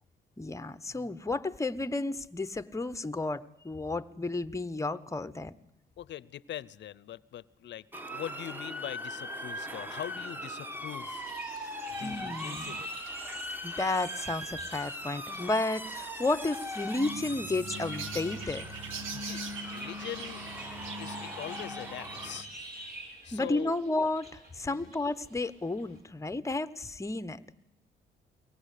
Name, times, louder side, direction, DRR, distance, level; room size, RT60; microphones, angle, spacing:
voice 1, 0.4-5.5 12.0-12.8 13.6-18.7 19.1-19.2 23.3-27.4, left 2 dB, 15° left, 13 dB, 1.0 m, -32 dB
voice 2, 6.0-11.3 11.9-12.9 19.2-20.5 21.0-22.5 23.2-23.7 24.7-24.9, left 11 dB, 65° left, 20 dB, 0.7 m, -42 dB
Motor vehicle (road) / Siren, 7.9-22.4, equal, 10° right, 1.5 m, -40 dB
sound 1, 11.1-26.0, right 1 dB, 50° right, 6.9 m, -48 dB
sound 2, 17.0-22.5, right 2 dB, 85° right, 1.7 m, -41 dB
23.5 x 18.5 x 8.4 m, 0.84 s
cardioid pair, 90°, 20 cm